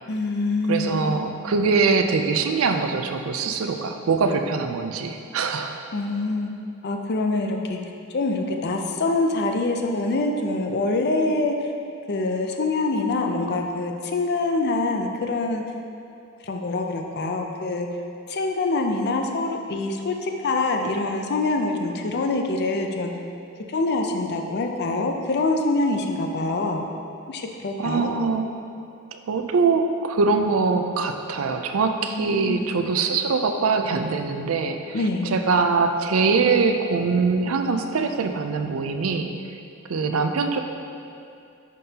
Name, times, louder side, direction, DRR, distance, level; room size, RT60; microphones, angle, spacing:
voice 1, 0.1-1.2 5.9-6.5 6.8-7.8 8.1-11.7 12.1-15.6 16.4-17.9 18.3-23.1 23.7-26.8 27.3-28.1 32.1-32.7 34.9-35.4, left 2 dB, 55° left, 3 dB, 0.5 m, -25 dB
voice 2, 0.7-5.8 27.8-28.4 29.1-39.3 39.9-40.6, right 4 dB, 90° right, 6 dB, 0.5 m, -23 dB
10.5 x 3.8 x 2.8 m, 2.5 s
head